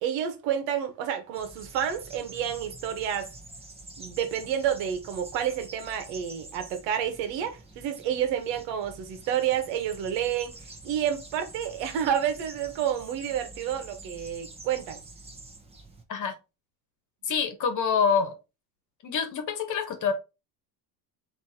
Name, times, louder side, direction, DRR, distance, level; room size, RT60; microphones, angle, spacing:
voice 1, 0.0-3.3 4.0-10.5 10.8-15.0, right 9 dB, 80° right, 1.3 m, -29 dB
sound 1, 1.3-16.0, right 2 dB, 15° right, 1.0 m, -47 dB
voice 2, 17.2-18.3 19.0-20.1, left 6 dB, 45° left, 1.3 m, -26 dB
4.1 x 3.0 x 4.2 m
cardioid pair, 125°, 43 cm